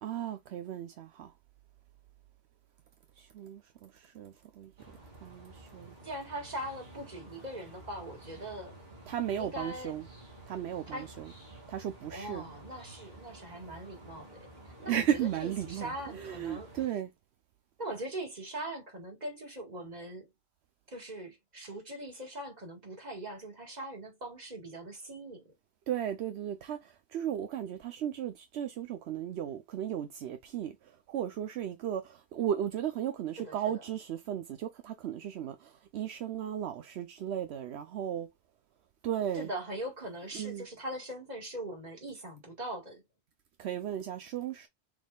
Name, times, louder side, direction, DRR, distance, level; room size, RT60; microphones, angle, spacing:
voice 1, 0.0-1.3 3.2-4.7 5.2-6.0 9.1-10.1 10.5-11.4 11.7-12.5 14.9-17.1 25.9-38.3 39.0-39.5 40.3-40.7 43.6-44.7, right 10 dB, 80° right, 0.9 m, -35 dB
sound 1, 4.8-16.9, right 1 dB, 65° right, 2.4 m, -51 dB
voice 2, 6.0-8.8 9.4-9.9 10.9-11.1 12.1-14.4 14.6-16.7 17.8-20.3 20.9-25.4 33.4-33.6 39.3-43.0, right 1 dB, 40° right, 2.0 m, -41 dB
6.3 x 3.6 x 2.3 m
omnidirectional pair, 1.1 m